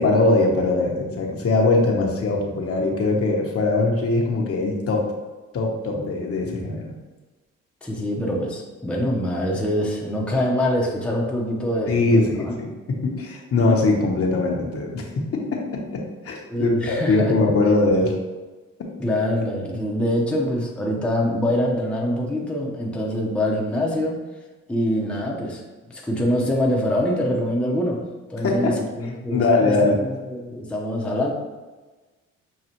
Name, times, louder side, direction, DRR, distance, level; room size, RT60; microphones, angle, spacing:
voice 1, 0.0-5.0 5.5-7.0 11.9-15.4 15.7-18.1 28.4-28.8 29.3-30.0, left 2 dB, 50° left, 0 dB, 0.9 m, -21 dB
voice 2, 7.8-12.5 16.5-17.3 19.0-24.2 24.7-25.6 25.9-28.0 28.3-31.3, left 1 dB, 5° left, -3 dB, 0.7 m, -24 dB
6.6 x 2.4 x 2.9 m, 1.2 s
cardioid pair, 90°, 30 cm